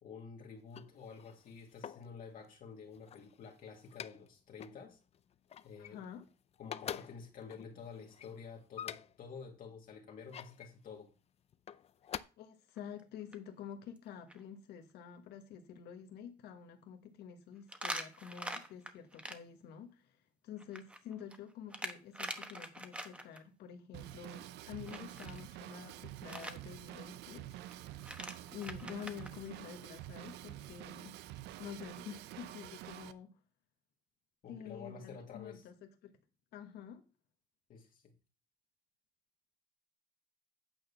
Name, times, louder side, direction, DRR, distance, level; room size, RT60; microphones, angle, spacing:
voice 1, 0.0-5.0 5.6-6.0 6.6-11.1 34.4-35.7 37.7-38.1, left 5 dB, 55° left, 1.9 m, -50 dB
sound 1, 0.6-2.2 2.8-4.3 4.6-4.8 5.1-6.3 6.5-9.3 10.0-10.7 11.5-12.2, left 9 dB, 40° left, 0.4 m, -47 dB
voice 2, 5.8-6.3 12.4-27.8 28.5-31.2 31.6-33.4 34.5-36.2 36.5-37.0, left 8 dB, 75° left, 1.4 m, -49 dB
sound 2, 12.8-13.0 13.3-13.4 14.0-14.1 14.3-14.4 17.7-19.4 20.6-23.4 24.9-25.4 26.3-26.6 27.7-27.8 28.0-29.3, right 1 dB, 5° right, 1.1 m, -43 dB
Drum kit / Drum, 23.9-33.1, right 13 dB, 85° right, 0.6 m, -48 dB
9.0 x 4.1 x 6.8 m
cardioid pair, 110°, 17 cm